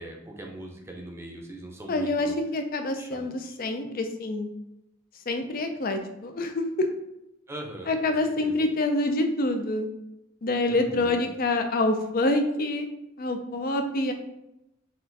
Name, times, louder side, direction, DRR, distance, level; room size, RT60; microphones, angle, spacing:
voice 1, 0.0-2.3 2.9-3.6 7.5-7.9 8.2-8.6 10.7-11.3, right 1 dB, 15° right, 1 dB, 0.6 m, -41 dB
voice 2, 1.9-4.5 5.3-6.9 7.9-9.9 10.4-12.9 13.2-14.1, left 2 dB, 45° left, 6 dB, 0.5 m, -26 dB
4.3 x 2.6 x 3.9 m, 0.87 s
head